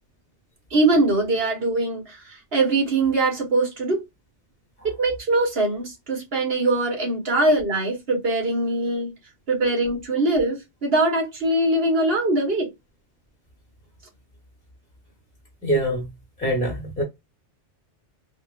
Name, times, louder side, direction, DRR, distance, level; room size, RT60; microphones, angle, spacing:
voice 1, 0.7-4.0 4.8-9.1 9.5-12.7, right 2 dB, 60° right, 1.5 m, -22 dB
voice 2, 15.6-16.1 16.4-17.0, right 1 dB, 5° left, 1.0 m, -24 dB
3.7 x 2.3 x 2.5 m
omnidirectional pair, 1.2 m